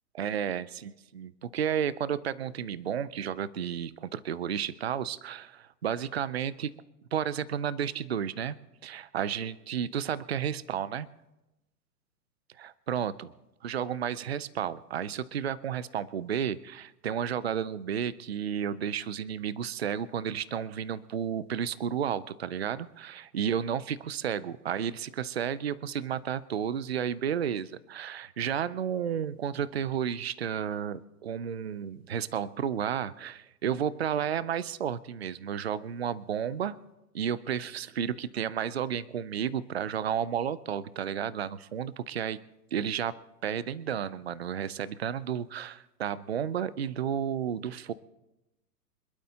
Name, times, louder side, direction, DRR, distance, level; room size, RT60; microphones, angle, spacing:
voice 1, 0.1-6.7 7.1-8.6 8.8-11.1 12.6-13.3 13.6-36.8 37.1-42.4 42.7-43.2 43.4-47.9, right 8 dB, 45° right, 18 dB, 0.4 m, -32 dB
26.5 x 12.0 x 2.9 m, 0.96 s
hypercardioid pair, 175°, 48 cm